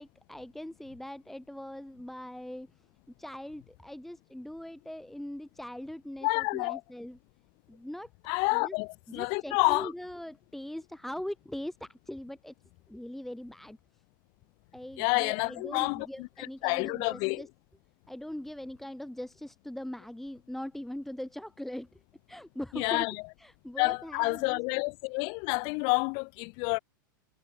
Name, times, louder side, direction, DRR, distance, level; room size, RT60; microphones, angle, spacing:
voice 1, 0.0-2.7 3.2-7.2 7.7-8.1 8.5-8.8 9.1-12.5 12.9-13.8 14.7-17.5 18.1-22.0 22.3-23.1 23.4-24.6, left 1 dB, ahead, 1.9 m, -41 dB
voice 2, 6.2-6.8 8.3-9.9 15.0-17.4 22.7-23.2 23.8-26.8, left 34 dB, 45° left, 1.3 m, -29 dB
hypercardioid pair, 100°, 11 cm